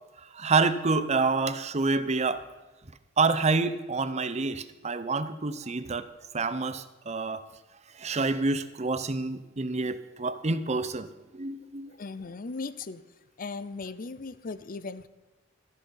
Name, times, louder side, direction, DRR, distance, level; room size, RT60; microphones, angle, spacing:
voice 1, 0.2-2.4 3.2-6.1 6.3-7.4 7.9-11.1 11.3-11.9, right 3 dB, 35° right, 0.8 m, -28 dB
voice 2, 11.9-13.0 13.4-15.1, left 4 dB, 45° left, 0.6 m, -37 dB
14.0 x 10.5 x 5.6 m
head